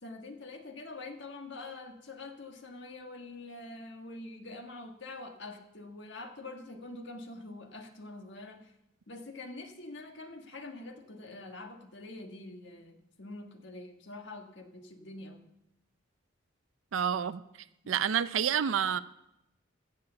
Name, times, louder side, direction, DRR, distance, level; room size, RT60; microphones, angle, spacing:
voice 1, 0.0-8.7 9.1-15.5 17.8-17.9, left 2 dB, 70° left, 4 dB, 1.4 m, -45 dB
voice 2, 16.9-17.4 17.9-19.0, right 8 dB, 85° right, 14 dB, 0.4 m, -28 dB
15.5 x 6.6 x 6.9 m, 0.88 s
head